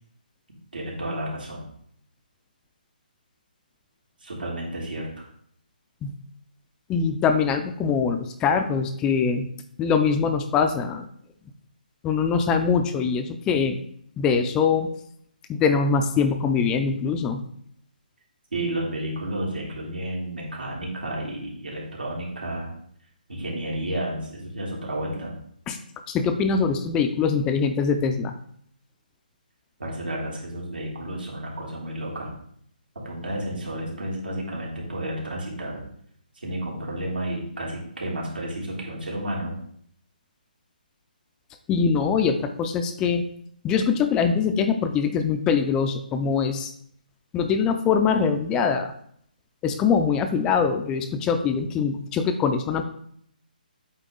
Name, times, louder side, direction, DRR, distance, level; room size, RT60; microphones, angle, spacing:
voice 1, 0.7-1.7 4.2-5.2 7.8-7.9 18.5-22.7 23.3-25.3 29.8-32.3 32.9-35.8 36.3-39.5, right 1 dB, 85° right, -3 dB, 3.1 m, -31 dB
voice 2, 6.9-9.5 9.8-11.1 12.0-13.8 14.2-14.9 15.5-17.4 25.7-25.8 26.1-28.3 41.7-43.2 43.6-46.7 47.3-48.9 49.6-52.8, left 6 dB, 15° left, 7 dB, 0.4 m, -23 dB
8.3 x 3.9 x 3.9 m, 0.65 s
hypercardioid pair, 155°, 5 cm